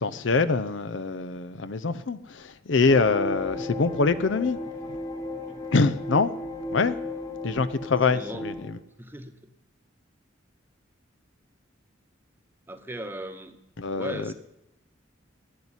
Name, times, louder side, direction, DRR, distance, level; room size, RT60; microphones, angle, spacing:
voice 1, 0.0-4.6 4.9-5.0 5.7-6.3 6.7-7.0 7.4-8.8 13.8-14.3, left 4 dB, 65° left, 0.6 m, -24 dB
sound 1, 2.9-8.7, left 2 dB, 20° left, 1.3 m, -35 dB
voice 2, 7.8-8.4 9.0-9.4 12.7-13.6 13.9-14.3, right 1 dB, 10° right, 1.0 m, -38 dB
11.5 x 9.6 x 9.9 m
head